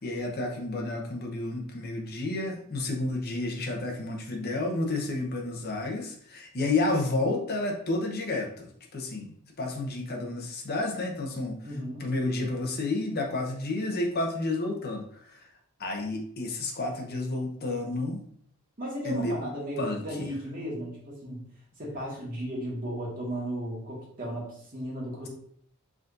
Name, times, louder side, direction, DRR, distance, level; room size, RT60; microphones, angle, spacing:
voice 1, 0.0-11.6 12.0-15.5 15.8-18.2 19.0-19.4 19.8-20.3, left 2 dB, 45° left, 2 dB, 0.9 m, -31 dB
voice 2, 11.6-12.1 18.8-21.4 21.8-25.3, equal, 40° right, -5 dB, 1.8 m, -35 dB
4.8 x 3.9 x 2.6 m, 0.63 s
head